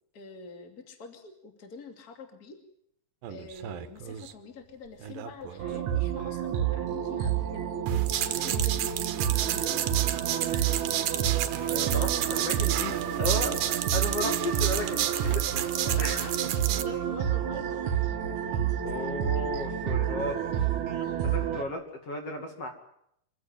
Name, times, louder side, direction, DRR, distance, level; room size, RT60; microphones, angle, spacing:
voice 1, 0.1-2.6 3.3-7.7 8.2-9.9 10.4-12.4 12.9-13.6 15.7-19.2 21.0-21.7, left 4 dB, 30° left, 4 dB, 2.8 m, -46 dB
sound 1, 3.2-4.3 5.0-5.7 6.3-6.4 7.4-7.5 7.9-16.8, right 11 dB, 90° right, 2.9 m, -31 dB
sound 2, 5.6-21.6, right 10 dB, 60° right, 2.7 m, -29 dB
voice 2, 11.7-13.5 13.9-15.4 16.0-16.2 18.8-20.7 21.2-22.7, left 2 dB, 45° left, 3 dB, 3.2 m, -34 dB
25.5 x 15.5 x 8.9 m, 0.73 s
omnidirectional pair, 4.0 m